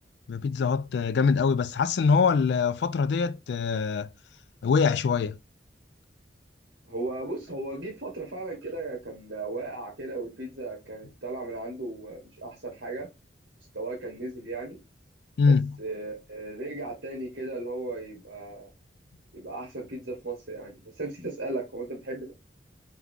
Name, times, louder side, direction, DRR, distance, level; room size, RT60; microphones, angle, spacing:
voice 1, 0.3-4.1 4.6-5.4 15.4-15.8, left 5 dB, 60° left, 0.3 m, -23 dB
voice 2, 6.9-13.1 13.7-14.8 15.8-18.7 19.3-22.3, right 2 dB, 65° right, 1.3 m, -36 dB
3.6 x 3.0 x 3.5 m
head